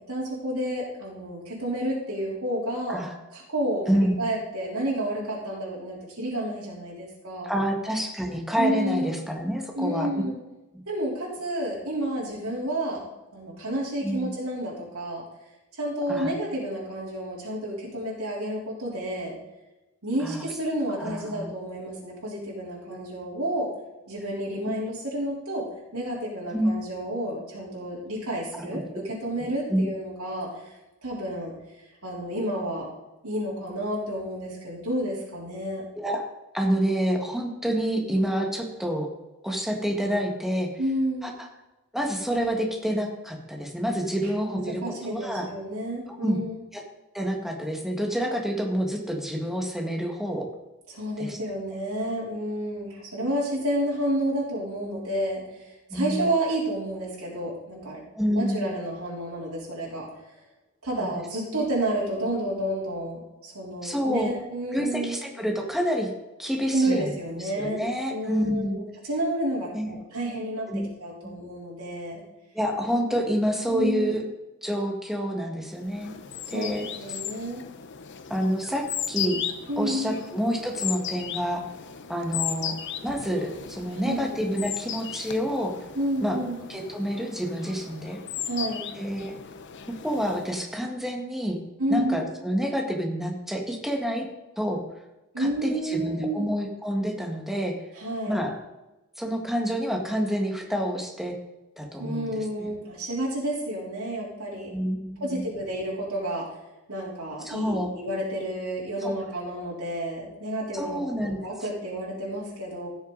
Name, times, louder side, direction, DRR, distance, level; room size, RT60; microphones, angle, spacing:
voice 1, 0.1-3.0 3.3-7.5 8.6-9.1 9.7-10.3 10.9-13.1 13.3-15.2 15.8-19.4 20.0-23.7 24.1-25.7 25.9-30.7 31.0-31.5 32.0-32.9 33.2-35.8 40.8-41.3 44.5-46.6 50.9-58.0 58.3-60.0 60.8-65.2 66.7-67.8 68.1-70.7 71.0-72.2 73.7-74.1 76.5-77.6 79.7-80.2 84.0-84.3 85.9-86.6 88.4-88.9 91.8-92.2 95.3-96.5 97.9-98.4 102.0-104.7 105.2-106.4 106.9-111.0 111.4-112.9, right 1 dB, 80° right, -6 dB, 3.7 m, -30 dB
voice 2, 7.4-10.1 14.0-14.3 16.1-16.3 20.2-20.4 21.0-21.5 22.9-23.0 26.5-26.7 28.5-28.8 29.7-29.9 35.9-36.3 36.5-39.1 39.4-40.7 41.2-41.3 41.9-45.5 46.1-46.4 46.7-46.8 47.1-50.5 51.2-51.4 55.9-56.3 58.1-58.7 61.0-61.1 61.5-61.7 63.8-64.3 64.7-66.1 66.4-67.1 67.4-68.8 69.7-69.9 70.7-70.9 71.2-71.4 72.5-74.2 74.6-76.1 76.5-76.8 78.3-79.4 79.8-81.6 82.1-82.7 83.0-85.7 86.2-86.4 86.7-88.2 89.0-89.3 90.0-91.6 91.9-94.2 94.6-94.8 95.4-97.7 98.3-98.6 99.2-101.3 101.8-102.4 104.7-105.4 107.4-107.9 109.0-109.1 110.7-111.4, equal, ahead, 1 dB, 1.7 m, -28 dB
sound 1, 75.8-90.7, left 9 dB, 55° left, 0.7 m, -36 dB
15.5 x 6.5 x 4.0 m, 1.0 s
head